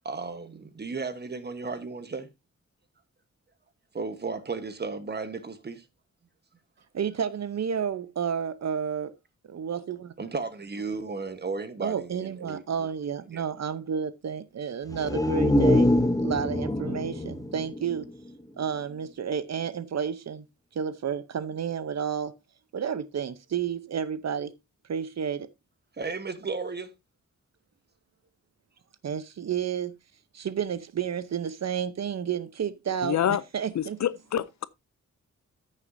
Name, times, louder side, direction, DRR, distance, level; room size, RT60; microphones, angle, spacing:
voice 1, 0.0-2.3 3.9-5.8 10.2-12.9 13.3-13.5 25.9-27.0, right 4 dB, 35° right, 1.2 m, -34 dB
voice 2, 6.9-9.1 9.5-10.1 11.8-15.9 16.2-18.1 18.6-20.4 20.7-22.3 22.7-24.5 24.9-25.5 29.0-29.9 30.3-34.0, right 7 dB, 60° right, 0.8 m, -31 dB
sound 1, 14.9-18.6 19.0-19.1, left 1 dB, 10° left, 0.7 m, -25 dB
voice 3, 33.0-33.4 33.7-34.6, left 10 dB, 65° left, 0.5 m, -27 dB
14.5 x 6.6 x 2.7 m
wide cardioid pair, 175°, 30 cm